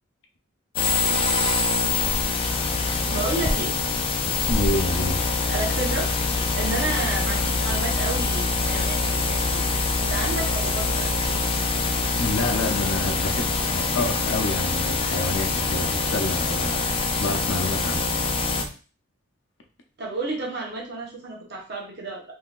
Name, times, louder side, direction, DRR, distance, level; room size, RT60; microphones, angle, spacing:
sound 1, 0.8-18.7, left 3 dB, 25° left, 0.3 m, -24 dB
sound 2, 2.5-18.7, equal, 15° right, 1.1 m, -37 dB
voice 1, 2.7-3.8 5.5-9.6 10.0-11.6 20.0-22.2, right 2 dB, 55° right, -1 dB, 1.0 m, -31 dB
voice 2, 4.5-5.2 12.2-16.8 17.2-18.1, left 2 dB, 60° left, 3 dB, 0.6 m, -28 dB
3.7 x 2.7 x 2.4 m, 0.36 s
head